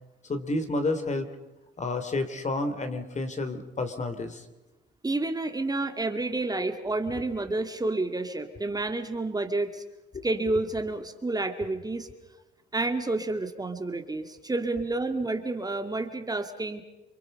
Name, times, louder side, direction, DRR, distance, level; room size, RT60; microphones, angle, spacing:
voice 1, 0.3-1.3 1.8-4.4 10.1-10.3, left 2 dB, 35° left, 8 dB, 2.9 m, -30 dB
voice 2, 5.0-9.8 10.2-12.1 12.7-16.8, right 2 dB, 20° right, 6 dB, 2.1 m, -29 dB
29.0 x 24.0 x 5.3 m, 1.1 s
cardioid pair, 90°, 20 cm